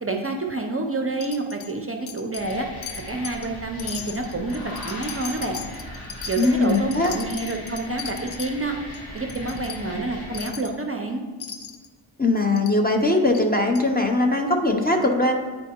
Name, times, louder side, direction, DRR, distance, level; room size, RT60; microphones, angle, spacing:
voice 1, 0.0-2.7 3.1-5.6 6.3-8.8 9.1-11.2, right 2 dB, 30° right, 3 dB, 0.5 m, -28 dB
Wind chime, 1.2-1.7 2.1-2.6 2.8-3.5 3.8-8.5 8.9-9.0 9.3-9.8 10.3-10.7 11.4-11.9 12.6-12.8 13.3-13.4 13.8-13.9, left 7 dB, 65° left, 0.6 m, -37 dB
sound 1, 2.4-10.5, equal, 45° left, 1.5 m, -39 dB
voice 2, 6.4-7.1 12.2-15.3, left 2 dB, 20° left, 3 dB, 0.5 m, -20 dB
9.3 x 4.5 x 2.8 m, 1.4 s
wide cardioid pair, 95°, 49 cm